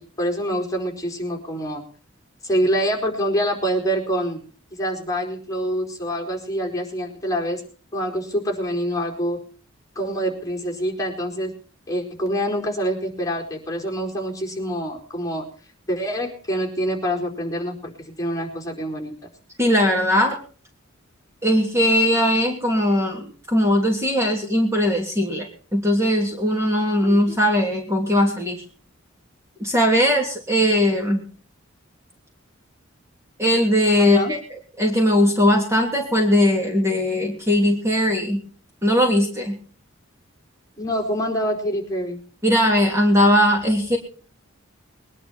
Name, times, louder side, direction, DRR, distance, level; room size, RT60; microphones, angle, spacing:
voice 1, 0.0-1.8 2.4-4.4 4.8-7.6 7.9-9.4 9.9-11.5 11.9-15.5 15.9-19.1 27.0-27.4 34.0-34.3 40.8-42.2, equal, 15° left, -1 dB, 4.5 m, -26 dB
voice 2, 19.6-20.4 21.4-28.6 29.6-31.2 33.4-38.4 38.8-39.5 42.4-44.0, equal, 15° right, 0 dB, 2.9 m, -19 dB
22.0 x 11.0 x 4.4 m, 0.41 s
head